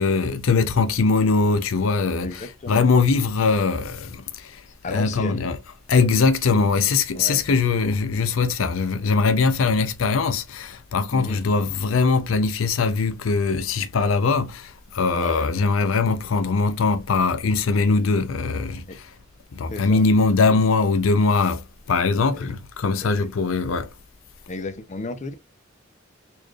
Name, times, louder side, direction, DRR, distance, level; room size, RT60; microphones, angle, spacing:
voice 1, 0.0-4.6 4.9-5.6 5.9-19.0 19.5-23.9, left 4 dB, 80° left, 0.5 m, -21 dB
voice 2, 2.2-2.9 4.8-5.5 7.1-7.4 11.1-11.4 15.1-15.5 18.9-19.0 19.7-20.0 22.3-22.5 23.0-23.3 24.5-25.3, left 3 dB, 35° left, 0.6 m, -33 dB
4.3 x 3.1 x 2.3 m
head